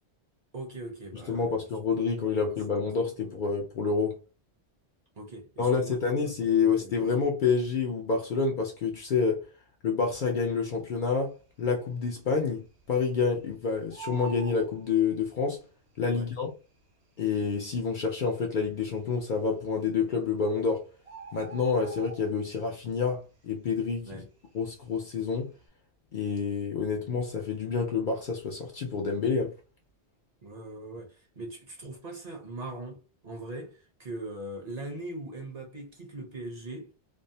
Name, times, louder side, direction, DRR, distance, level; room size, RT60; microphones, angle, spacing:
voice 1, 0.5-1.6 2.3-2.9 3.2-3.3 5.1-6.0 6.6-7.0 16.1-16.3 24.0-24.3 30.4-36.9, right 2 dB, 45° right, 0.6 m, -41 dB
voice 2, 1.3-4.2 5.6-9.4 9.8-11.3 11.6-15.6 16.0-16.5 17.2-20.9 21.3-24.1 24.5-25.5 26.1-29.5, left 5 dB, 60° left, 0.6 m, -28 dB
Bird, 11.0-11.6 11.9-12.0 12.3-13.5 13.7-15.6 16.4-16.5 17.1-17.2 17.4-17.6 18.2-18.7 19.6-19.7 20.1-20.2 20.4-22.7 23.0-23.3 23.7-25.0 25.4-25.6, right 4 dB, 70° right, 1.0 m, -45 dB
2.6 x 2.0 x 2.6 m
omnidirectional pair, 1.1 m